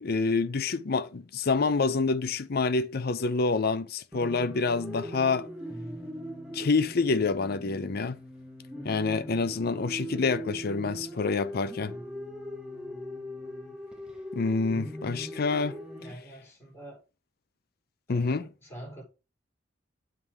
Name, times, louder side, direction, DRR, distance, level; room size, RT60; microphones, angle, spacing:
voice 1, 0.0-5.5 6.5-8.2 8.8-11.9 14.3-15.8 18.1-18.5, left 4 dB, 55° left, 0.6 m, -27 dB
sound 1, 4.1-16.1, equal, 5° right, 1.3 m, -40 dB
voice 2, 16.0-17.0 18.1-19.0, right 1 dB, 15° left, 4.3 m, -45 dB
7.2 x 3.8 x 4.7 m
head